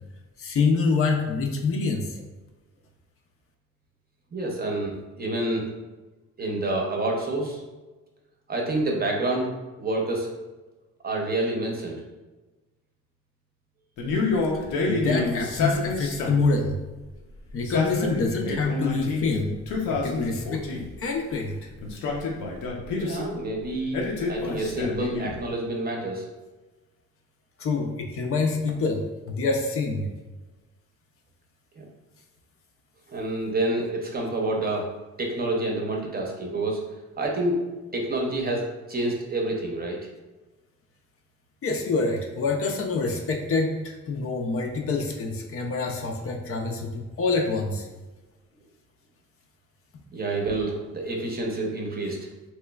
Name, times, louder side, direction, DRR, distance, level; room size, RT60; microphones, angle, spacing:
voice 1, 0.4-2.1 14.9-16.8 17.5-19.6 20.0-20.7 21.0-21.7 27.6-30.1 41.6-47.9, left 3 dB, 50° left, 3 dB, 0.5 m, -26 dB
voice 2, 4.3-5.7 6.4-7.6 8.5-9.5 9.8-10.3 11.0-12.0 22.9-24.0 24.3-26.2 31.8-31.9 33.1-34.9 35.2-36.8 37.2-37.6 37.9-40.1 50.1-52.2, right 2 dB, 30° right, 0 dB, 0.7 m, -28 dB
Male speech man speaking, 14.0-16.5 17.5-19.2 19.7-20.9 21.8-23.3 23.9-25.4, left 3 dB, 80° left, 0.7 m, -28 dB
3.2 x 3.0 x 2.3 m, 1.2 s
cardioid pair, 90°, 30 cm